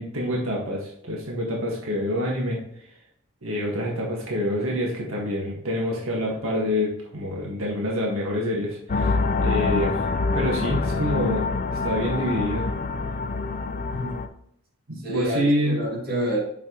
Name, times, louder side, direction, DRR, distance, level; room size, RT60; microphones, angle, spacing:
voice 1, 0.0-2.6 3.4-10.0 10.3-11.4 11.8-12.7 14.9-15.8, equal, 80° right, -2 dB, 1.6 m, -26 dB
sound 1, 8.9-14.3, left 3 dB, 40° left, 0.5 m, -25 dB
voice 2, 13.9-14.2 15.0-16.4, right 1 dB, 50° right, -2 dB, 2.1 m, -28 dB
7.4 x 6.0 x 3.0 m, 0.71 s
head